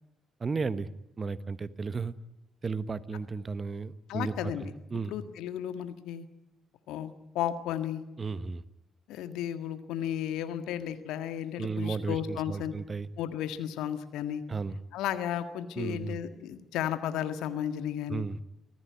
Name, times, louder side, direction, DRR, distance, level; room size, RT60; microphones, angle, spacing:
voice 1, 0.4-0.9 1.2-2.1 2.6-5.1 8.2-8.6 11.6-13.1 14.5-14.8 15.8-16.2 18.1-18.4, right 4 dB, 35° right, 15 dB, 1.2 m, -34 dB
voice 2, 4.1-6.3 6.9-8.0 9.1-12.7 13.2-14.4 14.9-18.2, left 10 dB, 70° left, 9 dB, 1.7 m, -34 dB
25.0 x 17.0 x 9.7 m, 0.91 s
hypercardioid pair, 45°, 0 cm